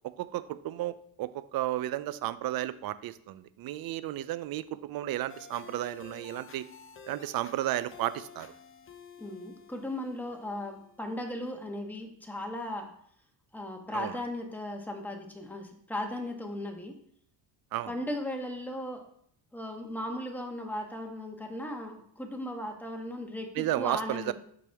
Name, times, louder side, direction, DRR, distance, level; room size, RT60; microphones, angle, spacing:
voice 1, 0.2-6.6 7.1-8.5 13.9-14.1 17.7-17.9 23.6-24.3, right 14 dB, 55° right, 15 dB, 0.6 m, -33 dB
sound 1, 5.3-11.3, left 6 dB, 30° left, 0.7 m, -51 dB
voice 2, 9.2-12.9 13.5-16.9 17.9-19.0 19.5-24.3, left 1 dB, 5° left, 2 dB, 1.2 m, -37 dB
6.2 x 5.9 x 3.5 m, 0.65 s
cardioid pair, 105°, 42 cm